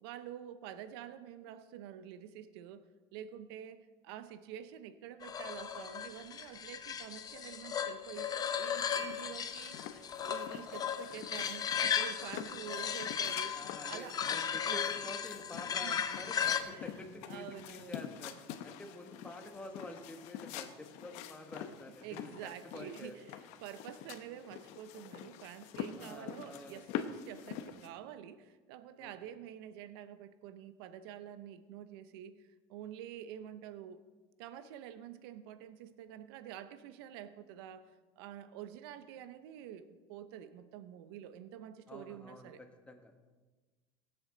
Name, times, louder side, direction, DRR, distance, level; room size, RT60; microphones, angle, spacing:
voice 1, 0.0-9.8 10.2-13.6 13.8-14.2 14.6-14.8 15.7-16.0 16.7-16.9 17.2-18.1 22.0-34.0 34.4-42.6, right 10 dB, 80° right, 12 dB, 0.7 m, -48 dB
sound 1, 5.2-16.6, left 8 dB, 30° left, 0.8 m, -36 dB
sound 2, 8.7-27.9, left 9 dB, 65° left, 0.9 m, -46 dB
voice 2, 13.5-18.4 18.6-22.3 22.7-23.1 26.0-26.8 29.0-29.1 41.9-42.5 42.9-43.2, left 2 dB, 10° left, 4 dB, 1.5 m, -48 dB
17.0 x 7.8 x 3.9 m, 1.3 s
supercardioid pair, 115°, 13 cm